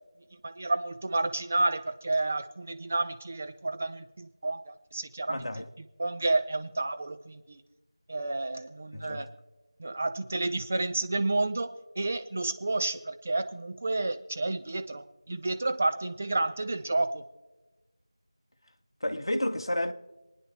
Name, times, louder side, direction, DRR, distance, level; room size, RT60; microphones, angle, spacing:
voice 1, 0.4-5.5 6.0-7.6 8.1-9.3 9.8-17.3, right 2 dB, 15° right, 0.4 m, -30 dB
voice 2, 5.3-5.7 8.9-9.3 19.0-19.9, left 1 dB, 60° left, 1.2 m, -31 dB
27.0 x 9.8 x 3.5 m
figure-of-eight pair, 175°, 3 cm